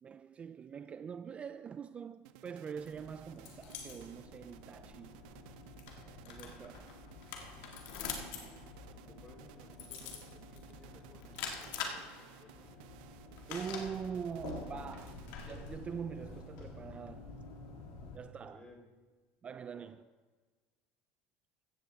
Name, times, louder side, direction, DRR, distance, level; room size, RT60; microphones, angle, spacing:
voice 1, 0.0-5.3 6.2-6.9 13.5-17.3 18.1-18.7 19.4-20.0, right 7 dB, 25° right, 0.3 m, -44 dB
sound 1, 2.2-15.9, right 11 dB, 80° right, 0.6 m, -57 dB
sound 2, 2.8-18.2, left 5 dB, 75° left, 2.0 m, -46 dB
voice 2, 8.8-12.9 18.4-18.8 19.7-19.9, left 2 dB, 20° left, 3.4 m, -59 dB
16.0 x 14.0 x 3.5 m
cardioid pair, 135°, 5 cm